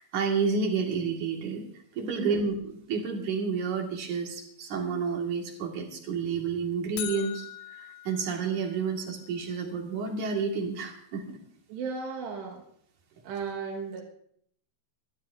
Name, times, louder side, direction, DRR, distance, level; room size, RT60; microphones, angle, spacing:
voice 1, 0.0-1.7 1.9-11.4, right 5 dB, 50° right, 1 dB, 3.1 m, -30 dB
voice 2, 2.1-2.4 11.7-12.6 13.2-14.0, right 5 dB, 80° right, -3 dB, 3.9 m, -35 dB
sound 1, 7.0-9.1, left 11 dB, 80° left, 3.2 m, -41 dB
24.5 x 12.5 x 2.7 m, 0.65 s
omnidirectional pair, 4.9 m